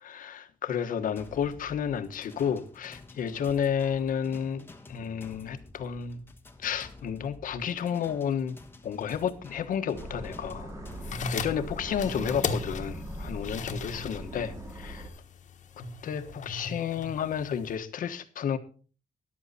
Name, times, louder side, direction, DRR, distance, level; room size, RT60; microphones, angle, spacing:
voice 1, 0.0-6.2 6.6-8.6 8.8-10.7 11.1-15.1 16.0-18.6, left 8 dB, 85° left, 1.3 m, -31 dB
sound 1, 1.2-12.5, left 2 dB, 15° left, 1.2 m, -51 dB
sound 2, 9.9-15.1, equal, 20° right, 2.1 m, -40 dB
sound 3, 10.9-17.8, left 4 dB, 65° left, 1.3 m, -38 dB
13.5 x 11.0 x 4.2 m
wide cardioid pair, 175°, 14 cm